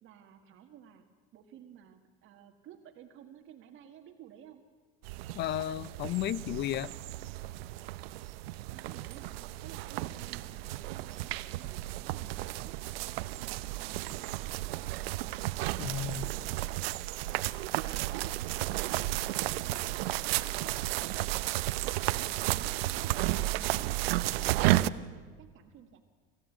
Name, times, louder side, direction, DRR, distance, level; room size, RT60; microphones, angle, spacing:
voice 1, 0.0-4.6 8.7-15.3 15.8-22.1 22.5-26.0, right 9 dB, 45° right, 5 dB, 1.7 m, -55 dB
sound 1, 5.0-24.9, right 17 dB, 80° right, 0.8 m, -33 dB
voice 2, 5.3-6.9 15.8-16.3, left 12 dB, 35° left, 20 dB, 0.7 m, -33 dB
25.0 x 15.0 x 9.0 m, 1.5 s
supercardioid pair, 135°, 29 cm